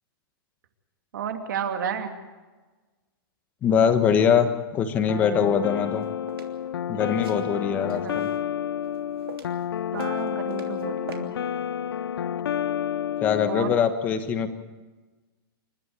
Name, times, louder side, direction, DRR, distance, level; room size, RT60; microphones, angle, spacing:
voice 1, 1.1-2.1 7.9-8.3 9.9-11.3 13.5-13.8, right 7 dB, 55° right, 5 dB, 2.8 m, -32 dB
voice 2, 3.6-6.0 6.9-8.3 13.2-14.5, left 7 dB, 15° left, 9 dB, 1.2 m, -23 dB
sound 1, 5.1-13.8, left 9 dB, 80° left, 0.7 m, -30 dB
sound 2, 5.8-6.5 7.2-8.4 8.8-9.7 9.9-10.8 11.1-11.2, right 6 dB, 80° right, 3.2 m, -43 dB
28.0 x 13.0 x 8.1 m, 1.2 s
hypercardioid pair, 180°, 12 cm